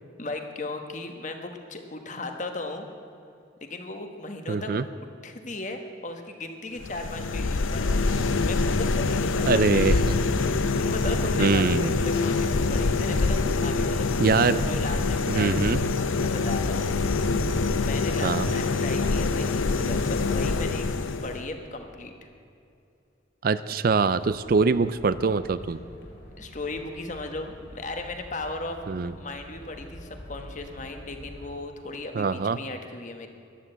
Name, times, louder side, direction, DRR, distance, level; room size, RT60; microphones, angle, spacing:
voice 1, 0.2-2.9 3.6-4.9 5.2-10.0 10.5-14.1 14.7-17.3 17.8-22.3 26.4-33.3, left 2 dB, 40° left, 5 dB, 1.3 m, -37 dB
voice 2, 4.5-4.8 9.4-10.2 11.4-11.9 14.2-14.6 15.3-15.8 18.2-18.5 23.4-25.8 28.9-29.1 32.1-32.6, right 4 dB, 45° right, 14 dB, 0.4 m, -23 dB
sound 1, 6.8-21.5, left 3 dB, 90° left, 0.7 m, -25 dB
sound 2, 24.2-31.5, equal, 55° left, 2.7 m, -46 dB
13.5 x 11.5 x 7.9 m, 2.5 s
head